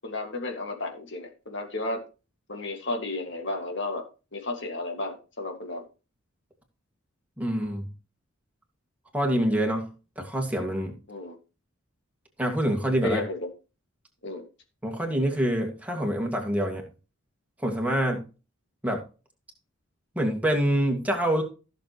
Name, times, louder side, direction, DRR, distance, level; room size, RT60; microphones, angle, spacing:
voice 1, 0.0-2.0 2.5-4.0 4.3-5.8 11.1-11.4 13.0-13.4 14.2-14.4, left 2 dB, 55° left, 4 dB, 2.1 m, -33 dB
voice 2, 7.4-7.9 9.1-9.9 10.2-10.9 12.4-13.2 14.8-16.8 17.6-18.2 18.8-19.0 20.1-21.4, equal, 5° right, 1 dB, 2.1 m, -26 dB
15.0 x 6.8 x 3.1 m, 0.32 s
head